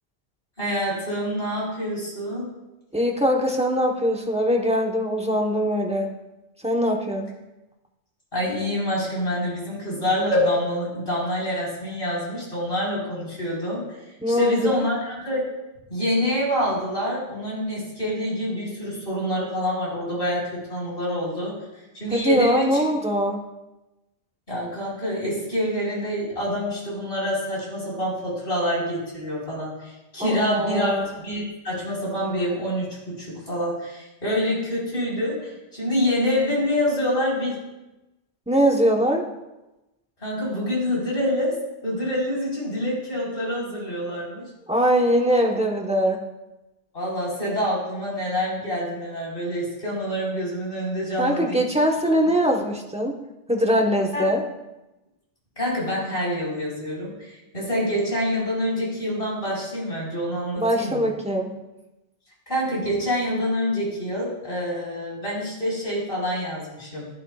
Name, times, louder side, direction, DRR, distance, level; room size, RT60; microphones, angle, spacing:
voice 1, 0.6-2.5 8.3-14.0 14.3-15.4 15.9-21.5 21.9-22.8 24.5-37.6 40.2-41.6 41.8-44.5 46.9-51.6 52.0-52.3 54.1-54.3 55.6-61.1 62.5-67.1, equal, 50° left, -6 dB, 5.0 m, -26 dB
voice 2, 2.9-6.1 6.6-7.3 14.2-14.7 22.1-23.4 30.2-31.1 38.5-39.3 44.7-46.2 51.2-53.1 53.5-54.4 60.6-61.5, equal, 5° right, 0 dB, 1.1 m, -22 dB
15.0 x 12.0 x 2.4 m, 0.98 s
omnidirectional pair, 1.2 m